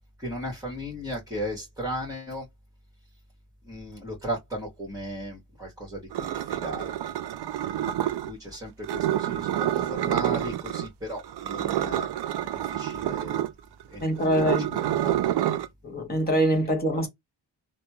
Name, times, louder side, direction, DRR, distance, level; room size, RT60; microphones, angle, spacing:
voice 1, 0.2-2.5 3.6-7.0 7.6-7.8 8.3-12.1 12.4-13.4 13.9-15.3 15.6-15.7, equal, 5° right, 1.8 m, -36 dB
sound 1, 6.1-8.3 8.8-10.9 11.2-15.7, right 12 dB, 65° right, 0.5 m, -28 dB
voice 2, 14.0-14.8 15.8-17.1, equal, 20° left, 1.6 m, -24 dB
3.3 x 2.3 x 3.0 m
wide cardioid pair, 120°, 42 cm